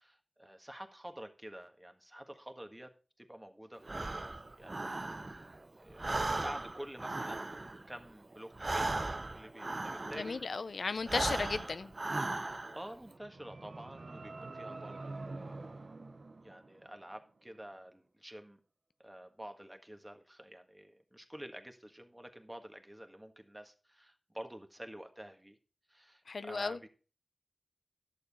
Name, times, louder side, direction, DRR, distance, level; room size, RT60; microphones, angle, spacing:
voice 1, 0.0-4.8 5.2-5.4 5.8-7.5 7.9-10.4 12.7-16.1 16.4-18.6 19.0-25.6 25.9-26.9, right 1 dB, 15° right, 1.6 m, -49 dB
Breathing, 3.8-5.6 5.9-10.5 11.0-12.9, right 2 dB, 45° right, 0.6 m, -37 dB
voice 2, 10.2-11.9 26.3-26.8, left 4 dB, 80° left, 0.5 m, -35 dB
sound 1, 12.9-17.2, right 3 dB, 70° right, 0.9 m, -46 dB
11.5 x 6.8 x 4.1 m
cardioid pair, 50°, 0 cm